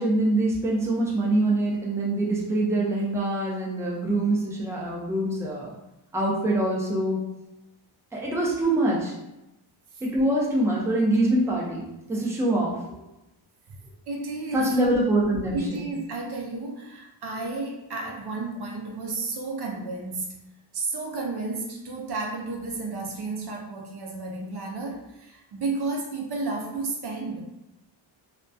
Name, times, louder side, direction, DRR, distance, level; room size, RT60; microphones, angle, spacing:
voice 1, 0.0-5.7 6.1-7.2 8.1-9.1 10.0-12.7 14.5-15.8, right 1 dB, 5° right, -4 dB, 0.5 m, -24 dB
voice 2, 14.1-14.8 15.5-20.4 20.7-27.5, right 3 dB, 55° right, -1 dB, 0.6 m, -32 dB
2.2 x 2.2 x 2.6 m, 0.90 s
cardioid pair, 80°, 49 cm